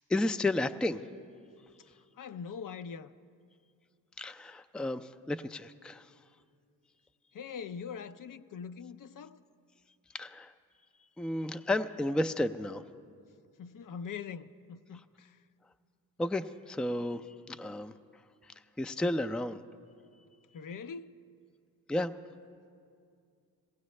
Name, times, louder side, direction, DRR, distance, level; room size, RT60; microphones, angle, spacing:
voice 1, 0.1-1.0 4.2-6.1 10.1-10.5 11.2-12.8 16.2-17.2 17.5-17.9 18.8-19.6 21.9-22.1, left 1 dB, ahead, 0.4 m, -32 dB
voice 2, 1.8-3.1 7.3-9.4 13.6-15.4 20.5-21.2, left 6 dB, 55° left, 0.5 m, -43 dB
17.5 x 15.5 x 3.2 m
cardioid pair, 45°, 38 cm